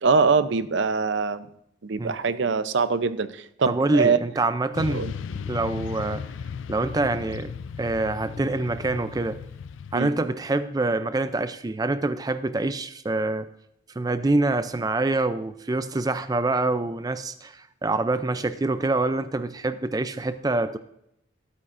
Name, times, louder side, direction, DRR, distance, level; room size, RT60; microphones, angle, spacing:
voice 1, 0.0-1.5 1.8-4.2 4.9-5.1 9.9-10.1, right 4 dB, 70° right, 13 dB, 0.6 m, -23 dB
voice 2, 3.7-6.2 6.7-9.4 9.9-13.5 14.0-20.8, right 2 dB, 20° right, 11 dB, 0.4 m, -26 dB
Motorcycle / Traffic noise roadway noise, 4.7-10.0, left 6 dB, 80° left, 0.4 m, -36 dB
13.0 x 13.0 x 2.6 m, 0.76 s
head